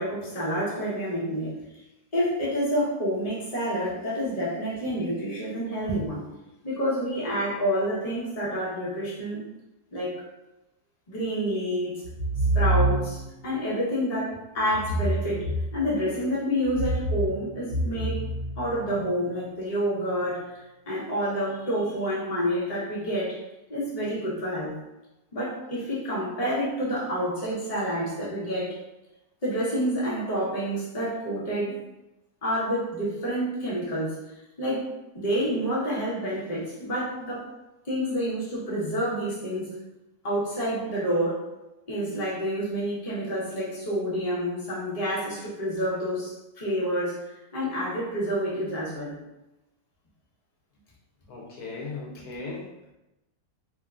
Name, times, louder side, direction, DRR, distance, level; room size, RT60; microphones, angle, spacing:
voice 1, 0.0-1.6 2.1-6.2 6.6-9.4 9.9-10.2 11.1-12.0 12.5-15.5 15.7-18.2 18.6-23.4 23.7-24.7 25.3-28.8 29.4-31.8 32.4-34.2 34.6-37.5 37.8-39.7 40.2-41.4 41.9-47.1 47.5-49.2, equal, 25° left, -8 dB, 1.1 m, -28 dB
sound 1, 12.0-13.3 14.7-16.1 16.6-19.1, right 1 dB, 35° right, 1.4 m, -27 dB
voice 2, 51.3-52.7, left 3 dB, 75° left, -2 dB, 1.1 m, -37 dB
3.7 x 2.8 x 2.4 m, 0.96 s
omnidirectional pair, 1.7 m